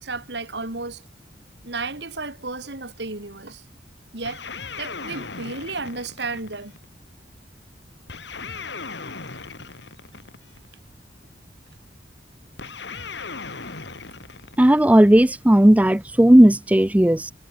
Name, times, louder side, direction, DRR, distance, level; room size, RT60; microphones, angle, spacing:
voice 1, 0.0-1.0 1.6-3.6 4.1-4.4 4.8-6.8, right 3 dB, 65° right, 2.7 m, -33 dB
sound 1, 4.2-6.8 8.1-10.7 12.6-15.2, left 4 dB, 75° left, 2.4 m, -37 dB
voice 2, 14.6-17.3, right 1 dB, 10° right, 0.4 m, -14 dB
head